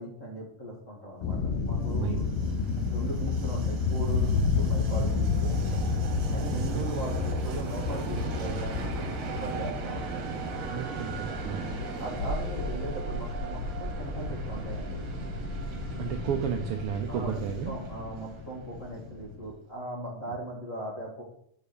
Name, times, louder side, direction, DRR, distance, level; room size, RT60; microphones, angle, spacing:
voice 1, 0.0-2.2 2.9-5.9 6.3-10.2 12.0-15.0 17.1-21.2, right 1 dB, 35° left, -2 dB, 1.5 m, -38 dB
sound 1, 1.2-19.5, left 4 dB, 75° left, 1.3 m, -31 dB
Train, 1.6-19.3, right 5 dB, 65° right, 2.2 m, -39 dB
voice 2, 1.9-2.2 2.7-3.1 6.5-6.9 10.7-11.8 16.0-17.7, right 8 dB, 90° right, 5 dB, 1.2 m, -33 dB
6.4 x 4.8 x 6.6 m, 0.70 s
omnidirectional pair, 3.4 m